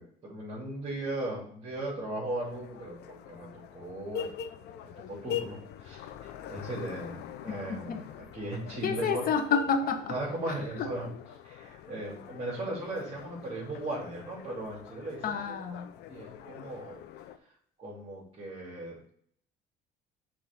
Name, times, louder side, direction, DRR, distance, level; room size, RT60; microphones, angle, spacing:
voice 1, 0.0-2.9 3.3-3.5 3.7-4.3 4.8-8.1 8.3-9.2 10.1-11.1 11.4-15.5 16.1-17.0 17.8-19.1, right 1 dB, 35° right, -7 dB, 2.9 m, -37 dB
sound 1, 2.3-17.4, left 9 dB, 80° left, 0.6 m, -43 dB
voice 2, 8.8-10.1 10.5-10.9 15.2-15.9, left 6 dB, 60° left, 6 dB, 1.1 m, -29 dB
6.1 x 3.6 x 5.2 m, 0.64 s
cardioid pair, 110°, 17 cm